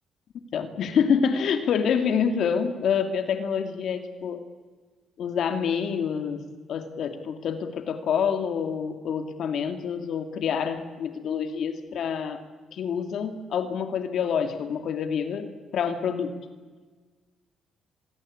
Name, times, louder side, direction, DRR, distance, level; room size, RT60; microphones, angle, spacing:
voice 1, 0.5-4.4 5.2-12.4 12.7-16.3, left 7 dB, 70° left, 8 dB, 2.3 m, -27 dB
24.5 x 22.5 x 8.6 m, 1.4 s
cardioid pair, 90°, 0 cm